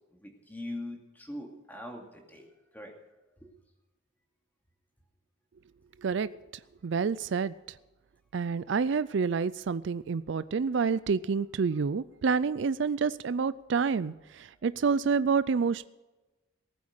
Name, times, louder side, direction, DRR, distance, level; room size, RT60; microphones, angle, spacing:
voice 1, 0.1-3.0 3.4-3.5, left 1 dB, 10° left, 1 dB, 2.5 m, -42 dB
voice 2, 6.0-6.3 6.8-7.5 8.3-15.9, right 5 dB, 60° right, 16 dB, 0.4 m, -28 dB
19.0 x 8.7 x 6.6 m, 1.1 s
head